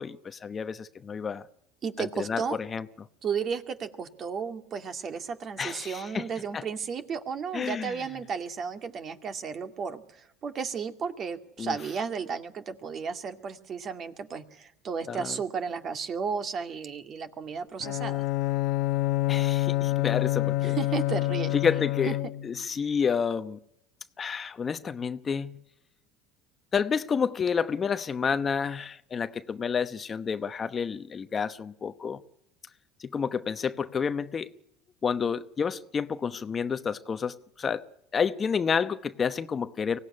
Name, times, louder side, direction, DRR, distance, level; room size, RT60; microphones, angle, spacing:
voice 1, 0.0-1.5 2.0-2.4 2.7-2.8 5.6-6.2 6.5-6.6 7.5-7.9 11.6-11.7 15.1-15.4 19.3-20.8 21.5-22.2 22.4-23.6 24.2-25.5 26.7-32.2 33.0-34.5 35.0-37.8 38.1-40.0, left 6 dB, 30° left, 0.9 m, -29 dB
voice 2, 1.8-2.6 3.2-18.3 20.5-21.5 22.1-22.2, right 6 dB, 40° right, 2.2 m, -33 dB
Bowed string instrument, 17.8-22.6, left 17 dB, 70° left, 0.8 m, -27 dB
24.0 x 17.0 x 9.9 m
supercardioid pair, 105°, 0 cm